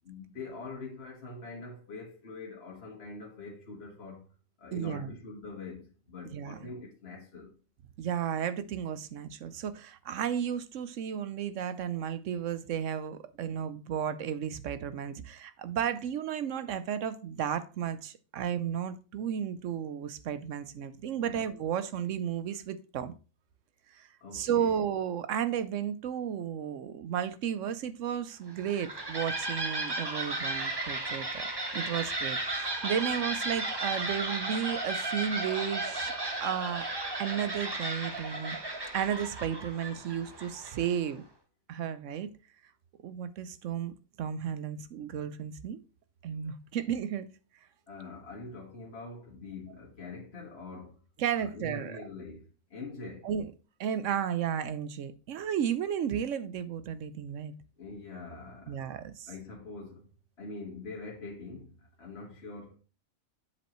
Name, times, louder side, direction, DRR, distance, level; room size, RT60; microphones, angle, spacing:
voice 1, 0.0-4.3 4.6-7.5 9.4-9.5 21.2-21.4 24.2-24.8 47.9-51.0 51.4-53.3 57.8-58.8 59.3-60.1 60.4-62.8, left 3 dB, 45° left, 1.6 m, -44 dB
voice 2, 4.7-5.1 6.3-6.6 8.0-23.1 23.9-24.1 24.3-31.5 31.7-36.9 37.2-38.6 38.9-41.2 41.7-42.3 43.0-45.8 46.2-47.3 51.2-52.0 53.2-53.5 53.8-57.5 58.7-59.3, right 8 dB, 65° right, 0.9 m, -33 dB
sound 1, 28.5-41.0, right 2 dB, 20° right, 0.9 m, -34 dB
7.5 x 7.0 x 3.0 m
omnidirectional pair, 1.5 m